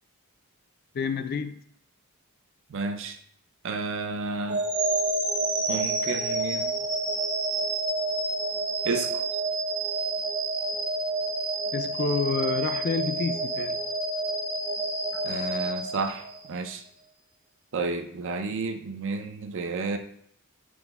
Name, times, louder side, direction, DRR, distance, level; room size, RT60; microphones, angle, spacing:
voice 1, 0.9-1.6 11.7-13.8, left 5 dB, 45° left, 9 dB, 0.3 m, -29 dB
voice 2, 2.7-3.2 3.6-4.6 5.7-6.8 8.8-9.1 15.1-16.8 17.7-20.0, right 4 dB, 60° right, 7 dB, 0.5 m, -31 dB
sound 1, 4.5-16.6, right 2 dB, 35° right, 1.1 m, -29 dB
6.0 x 2.1 x 3.4 m, 0.66 s
head